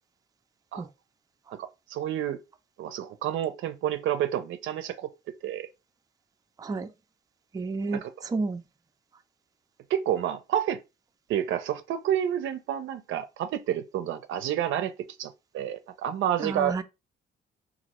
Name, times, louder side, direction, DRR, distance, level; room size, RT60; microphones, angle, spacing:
voice 1, 1.6-2.4 2.8-5.1 5.4-5.7 7.9-8.1 9.9-10.8 11.3-14.9 15.2-16.8, right 10 dB, 80° right, 0.5 m, -29 dB
voice 2, 6.6-6.9 7.5-8.6 16.4-16.8, right 3 dB, 20° right, 0.4 m, -31 dB
2.8 x 2.5 x 3.0 m
cardioid pair, 90°, 20 cm